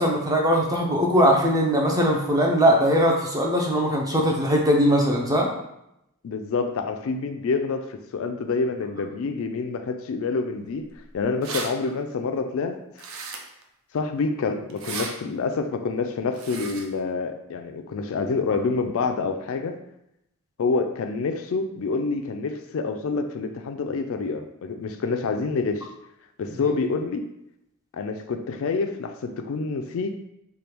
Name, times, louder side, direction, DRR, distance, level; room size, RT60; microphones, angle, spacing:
voice 1, 0.0-5.5, equal, 15° right, -1 dB, 0.6 m, -20 dB
voice 2, 6.2-10.9 11.1-12.8 13.9-19.8 20.6-25.9 26.4-27.2 27.9-30.2, left 4 dB, 65° left, 6 dB, 0.4 m, -27 dB
sound 1, 10.9-11.0 11.2-11.7 13.0-13.6 14.7-15.1 16.3-16.9, right 4 dB, 65° right, 0.5 m, -34 dB
3.4 x 2.3 x 4.4 m, 0.82 s
head